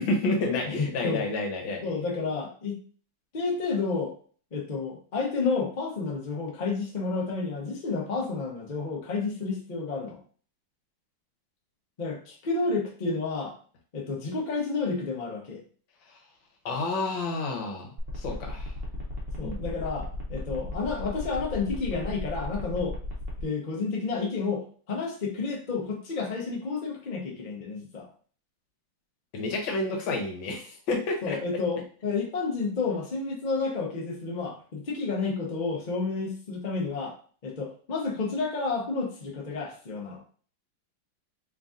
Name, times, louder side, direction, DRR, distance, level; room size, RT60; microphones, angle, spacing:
voice 1, 0.0-1.8 16.6-17.9 18.2-18.7 19.4-19.6 29.3-31.4, left 2 dB, 65° left, 1 dB, 1.6 m, -29 dB
voice 2, 0.7-1.2 1.8-2.8 3.3-4.1 4.5-10.2 12.0-13.5 13.9-15.6 19.4-23.0 23.4-28.1 31.2-37.1 37.4-40.2, left 4 dB, 90° left, -1 dB, 0.4 m, -30 dB
sound 1, 18.0-23.4, left 1 dB, 55° right, 0.6 m, -36 dB
3.8 x 2.6 x 3.6 m, 0.43 s
omnidirectional pair, 2.4 m